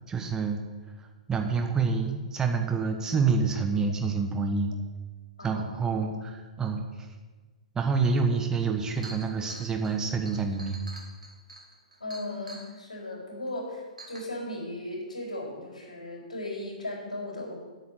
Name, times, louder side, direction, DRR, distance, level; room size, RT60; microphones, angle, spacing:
voice 1, 0.1-0.6 1.0-4.7 5.4-7.1 7.7-10.8, right 4 dB, 15° right, 4 dB, 1.2 m, -27 dB
voice 2, 5.4-5.9 12.0-17.5, left 1 dB, 75° left, -2 dB, 4.3 m, -37 dB
Chink clink, 8.3-8.4 8.7-12.7 13.5-13.6 14.0-14.2, right 2 dB, 80° right, 2.1 m, -46 dB
8.6 x 7.1 x 8.7 m, 1.3 s
figure-of-eight pair, 115°, 4 cm